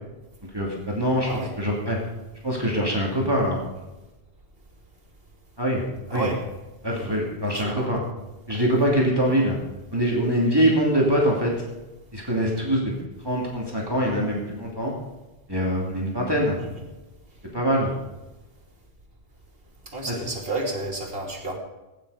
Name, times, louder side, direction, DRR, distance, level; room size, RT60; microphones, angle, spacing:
voice 1, 0.5-2.0 2.4-3.6 5.6-5.8 6.1-6.3 6.8-8.0 8.5-9.6 9.9-11.5 12.1-13.0 13.2-14.9 15.5-16.6 17.4-17.9 20.1-20.2, equal, 20° right, -3 dB, 2.9 m, -23 dB
voice 2, 1.2-1.5 6.1-6.4 6.8-8.0 8.5-8.7 16.6-16.8 19.9-21.6, right 2 dB, 60° right, 2 dB, 3.0 m, -32 dB
17.5 x 9.6 x 5.1 m, 1.1 s
omnidirectional pair, 1.1 m